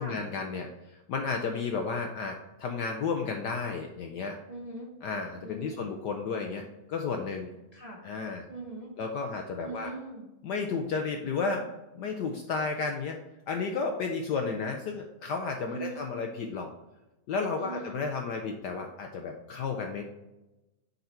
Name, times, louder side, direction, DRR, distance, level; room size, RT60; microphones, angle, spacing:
voice 1, 0.0-4.4 5.0-7.5 8.0-8.5 9.0-9.9 10.4-11.7 11.9-13.2 13.5-16.7 17.3-20.0, left 4 dB, 70° left, 4 dB, 1.0 m, -32 dB
voice 2, 4.5-4.9 5.4-5.8 7.7-8.0 8.5-8.9 9.6-10.2 15.7-16.1 17.5-18.0, right 2 dB, 30° right, -3 dB, 0.7 m, -41 dB
6.8 x 3.9 x 4.3 m, 1.0 s
omnidirectional pair, 2.3 m